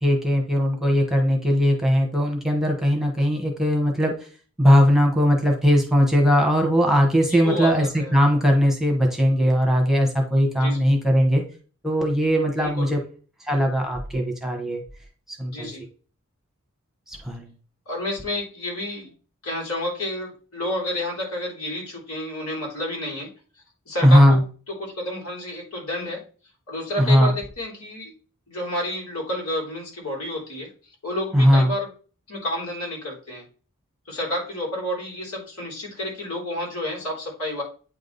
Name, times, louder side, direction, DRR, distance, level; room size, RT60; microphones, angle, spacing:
voice 1, 0.0-4.1 4.6-11.4 11.8-13.0 13.5-14.8 15.3-15.7 17.1-17.5 24.0-24.4 27.0-27.3 31.3-31.7, equal, ahead, 1 dB, 1.1 m, -19 dB
voice 2, 7.4-8.2 10.6-10.8 12.6-12.9 15.4-15.8 17.9-19.1 19.4-23.3 23.9-24.4 24.8-26.2 26.7-28.1 28.5-30.7 31.0-31.9 32.3-33.4 34.1-37.6, left 1 dB, 85° left, -2 dB, 3.6 m, -30 dB
8.6 x 3.6 x 4.0 m, 0.38 s
head